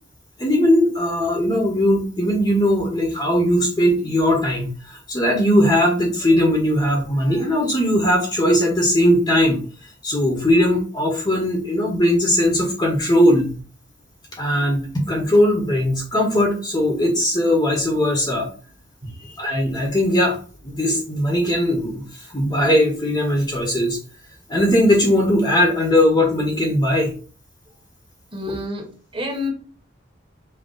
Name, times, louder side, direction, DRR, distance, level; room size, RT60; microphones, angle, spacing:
voice 1, 0.4-9.6 10.0-13.5 14.4-18.5 19.2-20.4 20.6-24.0 24.5-27.1 28.5-28.6, left 1 dB, 20° left, 0.9 m, -19 dB
voice 2, 28.3-28.9 29.1-29.5, left 2 dB, 25° right, 1.2 m, -28 dB
5.4 x 2.1 x 3.9 m
head